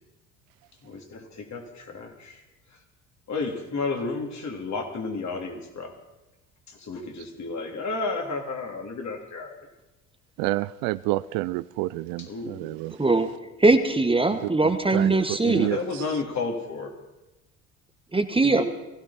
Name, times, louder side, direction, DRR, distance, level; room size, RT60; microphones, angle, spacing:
voice 1, 0.8-2.4 3.3-5.9 6.7-9.5 12.2-12.6 15.4-16.9 18.4-18.7, left 3 dB, 45° left, 3.1 m, -32 dB
voice 2, 10.4-13.0 14.3-16.0, right 19 dB, 65° right, 0.5 m, -29 dB
voice 3, 13.6-15.7 18.1-18.6, right 3 dB, 15° right, 1.3 m, -21 dB
19.0 x 16.0 x 4.3 m
hypercardioid pair, 60°, 38 cm